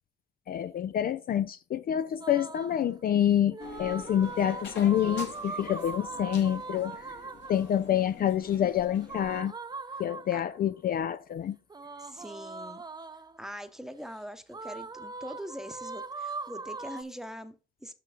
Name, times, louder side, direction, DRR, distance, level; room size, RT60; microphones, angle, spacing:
voice 1, 0.5-7.2 7.5-9.5 10.0-11.6, left 10 dB, 50° left, 0.4 m, -27 dB
sound 1, 2.2-2.8 3.5-7.7 9.0-10.6 11.7-13.4 14.5-17.0, right 4 dB, 20° right, 0.6 m, -40 dB
sound 2, 3.6-9.4, left 4 dB, 65° left, 2.2 m, -46 dB
voice 2, 12.0-12.8 13.4-17.9, equal, ahead, 0.9 m, -42 dB
6.1 x 5.9 x 5.0 m
cardioid pair, 90°, 20 cm